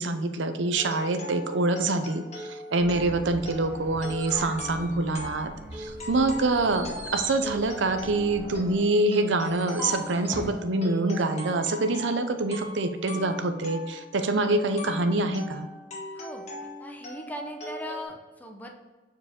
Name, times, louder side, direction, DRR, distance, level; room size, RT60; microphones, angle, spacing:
voice 1, 0.0-5.5 5.8-15.7, right 2 dB, 75° right, 8 dB, 0.6 m, -26 dB
sound 1, 0.8-18.0, left 1 dB, 35° left, 1.4 m, -40 dB
sound 2, 2.8-8.8, right 1 dB, 60° right, 1.2 m, -44 dB
sound 3, 3.6-5.5 6.0-10.6, equal, 15° right, 1.3 m, -40 dB
voice 2, 16.2-16.5 16.8-18.7, equal, 10° left, 2 dB, 0.8 m, -39 dB
7.1 x 4.8 x 3.6 m, 1.3 s
head